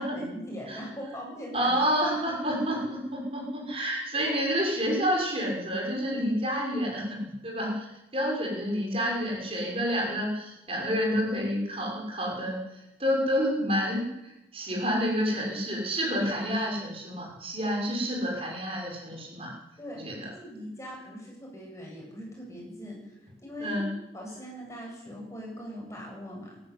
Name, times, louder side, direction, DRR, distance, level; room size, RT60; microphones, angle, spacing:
voice 1, 0.0-1.8 19.8-20.0 20.3-23.8 24.1-26.6, equal, 15° left, -2 dB, 7.8 m, -40 dB
voice 2, 1.5-2.8 3.1-14.1 14.5-19.5 19.9-20.3 23.6-23.9, equal, 30° right, -2 dB, 6.4 m, -29 dB
23.5 x 12.0 x 9.7 m, 0.94 s
head